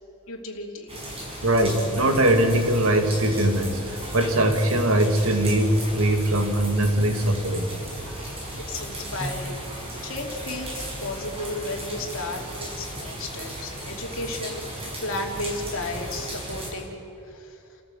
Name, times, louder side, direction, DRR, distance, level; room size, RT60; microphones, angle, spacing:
voice 1, 0.3-1.0 8.6-16.9 17.3-17.6, left 2 dB, 65° left, 2 dB, 3.0 m, -34 dB
sound 1, 0.9-16.7, right 1 dB, 25° right, 6.0 m, -36 dB
voice 2, 1.4-7.7 8.0-8.1, right 1 dB, 70° right, 5 dB, 2.2 m, -21 dB
29.5 x 14.5 x 8.0 m, 2.7 s
head